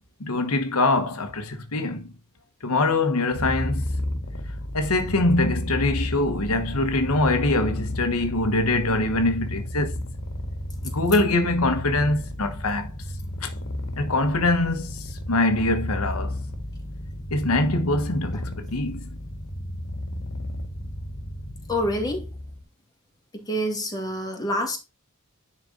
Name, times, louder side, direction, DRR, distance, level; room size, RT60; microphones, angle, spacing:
voice 1, 0.2-2.1 2.6-3.9 4.7-10.0 10.8-12.9 13.4-13.5 14.0-16.3 17.3-19.1, left 2 dB, 85° left, 1.2 m, -23 dB
Purr, 3.3-22.6, left 1 dB, 65° left, 1.8 m, -33 dB
voice 2, 21.7-22.3 23.4-24.8, equal, 20° left, 2.6 m, -27 dB
10.0 x 4.4 x 3.8 m
head